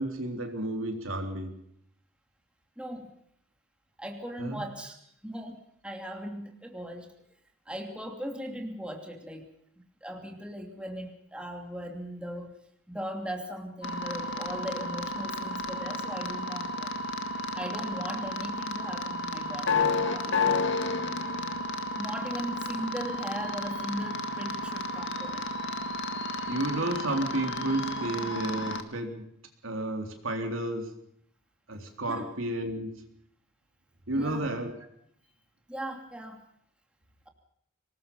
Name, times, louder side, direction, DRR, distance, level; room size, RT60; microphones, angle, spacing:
voice 1, 0.0-1.6 4.4-4.6 26.5-29.3 29.6-31.0 31.7-33.0 34.1-34.7, right 1 dB, 70° right, 4 dB, 3.7 m, -32 dB
voice 2, 2.8-3.1 4.0-5.0 5.2-7.1 7.7-9.5 10.0-12.6 12.9-16.9 17.6-20.7 21.9-25.5 32.1-32.4 34.1-34.4 35.7-36.4, equal, 5° right, 2 dB, 2.8 m, -38 dB
sound 1, 13.8-28.8, left 2 dB, 60° left, 1.9 m, -32 dB
24.5 x 20.0 x 5.5 m, 0.69 s
head